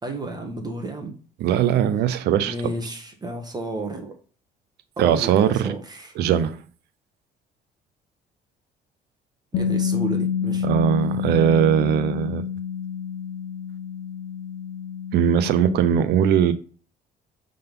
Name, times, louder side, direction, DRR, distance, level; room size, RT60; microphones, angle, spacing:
voice 1, 0.0-1.1 2.4-4.1 5.0-6.1 9.5-10.6, right 2 dB, 25° right, 1.4 m, -32 dB
voice 2, 1.4-2.5 5.0-5.7 6.2-6.6 10.6-12.4 15.1-16.5, right 9 dB, 75° right, 0.6 m, -20 dB
Bass guitar, 9.5-15.8, left 7 dB, 75° left, 1.1 m, -28 dB
6.7 x 3.9 x 5.4 m
cardioid pair, 110°, 17 cm